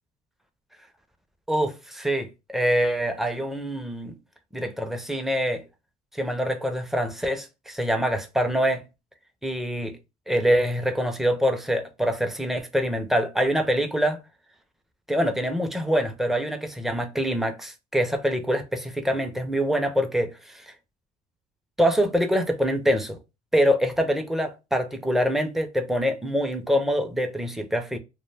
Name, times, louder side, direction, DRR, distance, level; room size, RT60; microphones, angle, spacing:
voice 1, 1.5-4.1 4.5-5.6 6.1-8.8 9.4-9.9 10.3-14.2 15.1-20.7 21.8-23.2 23.5-28.0, equal, ahead, 0.4 m, -25 dB
2.3 x 2.2 x 3.2 m
cardioid pair, 110°, 17 cm